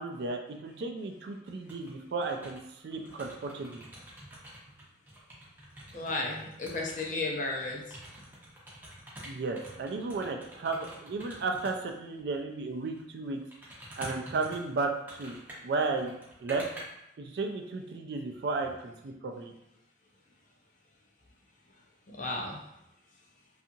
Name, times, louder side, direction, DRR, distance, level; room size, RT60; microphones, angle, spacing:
voice 1, 0.0-3.8 9.3-13.4 14.0-16.6 17.2-19.5, right 3 dB, 60° right, 3 dB, 0.3 m, -34 dB
sound 1, 1.5-1.9 2.2-6.1 6.5-12.0 12.8-13.0 13.5-16.8, equal, 10° right, 0.5 m, -48 dB
voice 2, 5.9-8.0 22.1-22.6, left 2 dB, 40° left, -1 dB, 0.5 m, -34 dB
2.7 x 2.4 x 2.6 m, 0.82 s
head